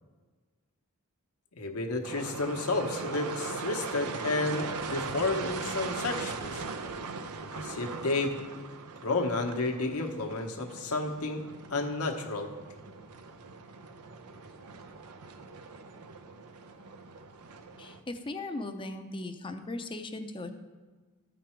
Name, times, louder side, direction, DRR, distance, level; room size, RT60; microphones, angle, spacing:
voice 1, 1.6-6.6 7.5-8.4 9.0-11.4 11.7-12.5, left 3 dB, 75° left, 3 dB, 1.0 m, -31 dB
sound 1, 2.0-18.0, right 4 dB, 90° right, 0.6 m, -40 dB
voice 2, 17.8-20.5, left 2 dB, 25° left, 7 dB, 0.6 m, -38 dB
13.5 x 5.3 x 4.4 m, 1.4 s
head